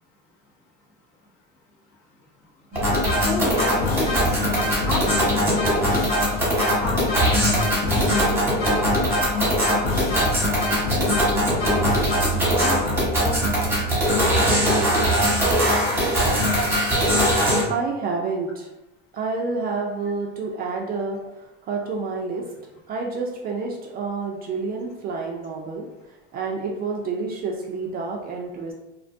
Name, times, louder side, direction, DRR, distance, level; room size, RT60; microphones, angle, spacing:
sound 1, 2.7-13.4, left 3 dB, 80° left, 0.8 m, -27 dB
sound 2, 2.7-17.6, equal, 10° right, 1.0 m, -21 dB
voice 1, 3.3-6.3 6.8-7.6 7.9-9.8 10.1-11.1 11.9-12.9 13.2-13.7 14.1-15.6, left 2 dB, 45° left, -1 dB, 0.8 m, -33 dB
sound 3, 10.8-15.9, right 5 dB, 90° right, 0.6 m, -31 dB
voice 2, 17.7-18.7 19.1-21.2 21.6-22.5 22.9-25.9 26.3-28.7, right 4 dB, 30° right, 0 dB, 0.4 m, -28 dB
2.5 x 2.2 x 2.5 m, 0.93 s
supercardioid pair, 105°, 30 cm